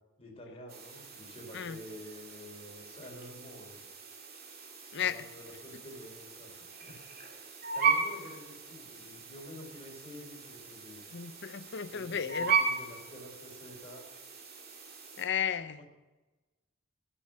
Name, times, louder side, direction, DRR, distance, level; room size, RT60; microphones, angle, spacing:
voice 1, 0.2-3.8 5.0-7.0 7.7-11.0 11.9-14.1, equal, 30° left, 3.7 m, -49 dB
sound 1, 0.7-15.2, right 6 dB, 45° right, 2.3 m, -37 dB
voice 2, 4.9-5.3 11.1-12.6 15.2-15.8, left 8 dB, 55° left, 0.6 m, -34 dB
14.5 x 8.3 x 6.2 m
head